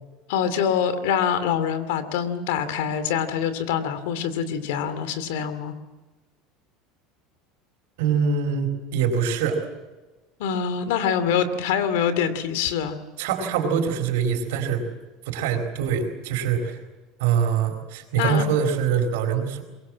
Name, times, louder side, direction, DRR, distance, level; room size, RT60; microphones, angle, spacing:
voice 1, 0.3-5.7 10.4-13.0 18.1-18.4, left 8 dB, 85° left, 12 dB, 2.5 m, -25 dB
voice 2, 8.0-9.6 13.2-14.8 15.3-16.8 17.2-19.6, right 7 dB, 90° right, 3 dB, 4.2 m, -24 dB
24.0 x 22.0 x 7.4 m, 1.2 s
cardioid pair, 165°, 0 cm